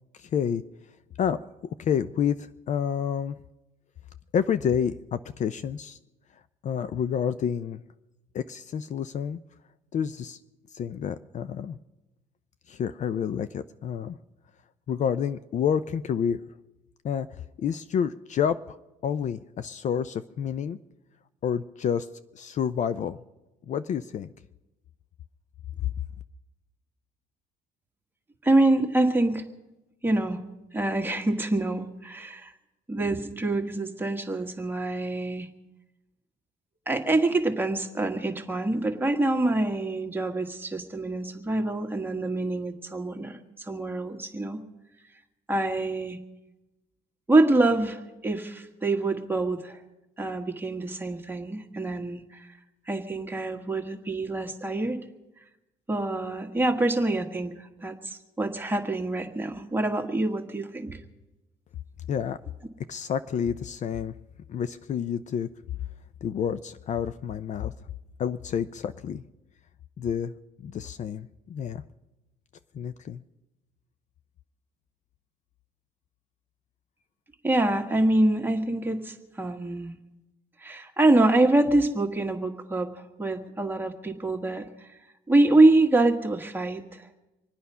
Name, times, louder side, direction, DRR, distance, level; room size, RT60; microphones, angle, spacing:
voice 1, 0.1-0.6 1.2-3.4 4.3-6.0 6.6-7.8 8.3-9.4 9.9-10.4 10.7-11.8 12.7-14.2 14.9-16.4 17.0-17.3 17.6-18.8 19.0-20.8 21.4-22.1 22.3-23.2 23.7-24.3 25.8-25.9 62.1-62.4 62.9-64.1 64.5-65.5 66.2-67.7 68.2-69.2 70.0-70.3 70.6-71.8 72.7-73.2, left 8 dB, 45° left, 13 dB, 0.5 m, -29 dB
voice 2, 28.4-29.4 30.0-30.4 30.7-32.5 32.9-35.5 36.8-44.6 45.5-46.2 47.3-49.8 50.2-52.5 52.9-55.0 55.9-61.0 77.4-79.9 80.6-82.9 83.2-84.9 85.3-87.1, right 2 dB, 10° right, 3 dB, 1.7 m, -25 dB
25.5 x 9.4 x 5.6 m, 1.0 s
cardioid pair, 110°, 17 cm